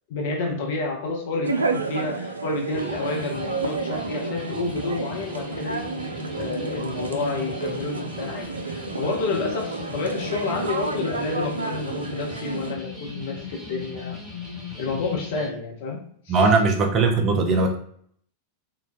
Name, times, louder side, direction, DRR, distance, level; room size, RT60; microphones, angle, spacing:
voice 1, 0.1-5.9 6.4-14.2 14.8-16.4, left 3 dB, 55° left, 0 dB, 0.6 m, -29 dB
sound 1, 1.4-12.7, right 3 dB, 75° right, 0.3 m, -31 dB
sound 2, 2.7-15.5, left 4 dB, 15° right, 1.5 m, -38 dB
voice 2, 16.3-17.7, right 3 dB, 30° right, 3 dB, 0.6 m, -19 dB
3.9 x 2.2 x 2.5 m, 0.62 s
figure-of-eight pair, 90°, 0 cm